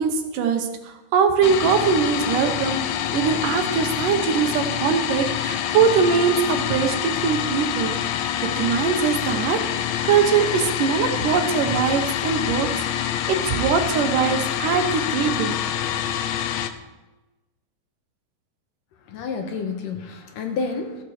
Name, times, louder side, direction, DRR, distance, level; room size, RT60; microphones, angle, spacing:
voice 1, 0.0-7.0 7.2-8.0 8.6-12.7 12.9-15.5, right 6 dB, 70° right, 6 dB, 2.5 m, -22 dB
sound 1, 1.4-16.7, left 10 dB, 90° left, 1.5 m, -26 dB
voice 2, 19.1-21.0, left 4 dB, 70° left, 5 dB, 2.6 m, -29 dB
14.5 x 7.3 x 6.5 m, 1.1 s
omnidirectional pair, 4.1 m